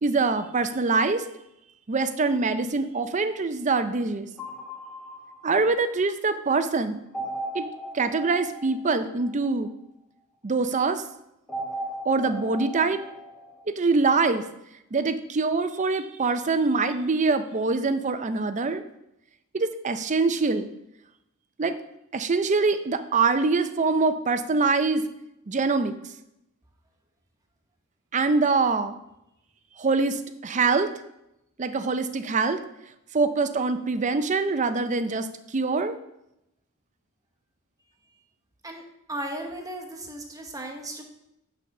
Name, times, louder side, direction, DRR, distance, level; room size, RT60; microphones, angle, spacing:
voice 1, 0.0-1.2 1.9-4.3 5.4-7.0 7.5-7.6 7.9-9.7 10.4-11.0 12.1-13.0 13.7-14.4 14.9-18.8 19.5-20.7 21.6-21.8 22.1-25.0 25.5-25.9 28.1-29.0 29.8-30.9 31.6-32.6 33.1-35.3 35.5-35.9, right 4 dB, 35° right, 10 dB, 0.5 m, -24 dB
sound 1, 4.4-6.1 7.1-9.7 11.5-13.6, right 1 dB, 5° left, 1.5 m, -37 dB
voice 2, 39.1-41.0, right 1 dB, 15° right, 3 dB, 1.0 m, -35 dB
9.2 x 4.0 x 5.9 m, 0.84 s
head